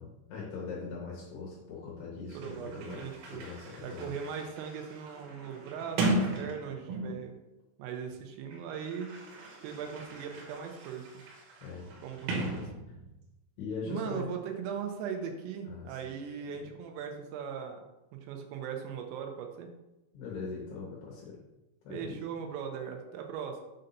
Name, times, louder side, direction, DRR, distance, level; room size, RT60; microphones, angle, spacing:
voice 1, 0.0-4.2 11.6-11.9 12.3-12.4 13.6-14.3 15.7-16.0 20.1-21.4 21.8-22.2, left 4 dB, 70° left, -4 dB, 2.6 m, -41 dB
Sliding door, 2.0-2.1 2.3-7.4 8.3-13.3, right 2 dB, 75° right, 3.1 m, -37 dB
voice 2, 2.3-3.4 3.8-7.3 7.8-9.1 9.6-11.1 12.0-12.6 13.8-17.8 18.1-19.7 21.9-23.6, right 7 dB, 90° right, 3 dB, 3.3 m, -39 dB
7.7 x 2.6 x 5.5 m, 0.96 s
omnidirectional pair, 5.9 m